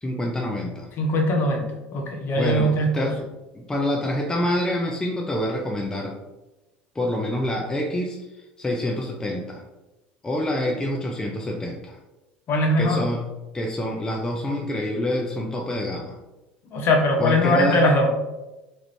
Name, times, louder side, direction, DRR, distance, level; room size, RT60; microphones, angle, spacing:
voice 1, 0.0-0.9 2.4-3.2 3.5-6.2 6.9-9.6 10.2-12.0 12.8-13.2 13.5-16.2 17.2-17.9, left 1 dB, 15° left, 0 dB, 0.5 m, -27 dB
voice 2, 1.0-3.1 12.5-13.0 16.7-18.1, left 1 dB, 45° left, 2 dB, 0.7 m, -21 dB
3.1 x 2.5 x 3.2 m, 1.0 s
hypercardioid pair, 70°, 5 cm